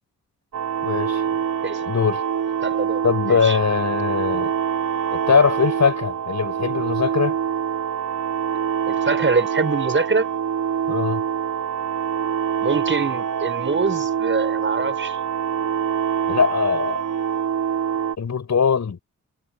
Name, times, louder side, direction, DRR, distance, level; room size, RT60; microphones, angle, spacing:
sound 1, 0.5-18.2, right 8 dB, 75° right, 3.7 m, -25 dB
voice 1, 0.8-1.2 1.9-2.2 3.0-4.5 5.1-7.4 10.9-11.2 16.3-17.0 18.2-19.0, left 6 dB, 60° left, 5.6 m, -21 dB
voice 2, 2.6-3.6 8.9-10.3 12.6-15.2, right 4 dB, 40° right, 6.2 m, -24 dB
cardioid pair, 85°, 31 cm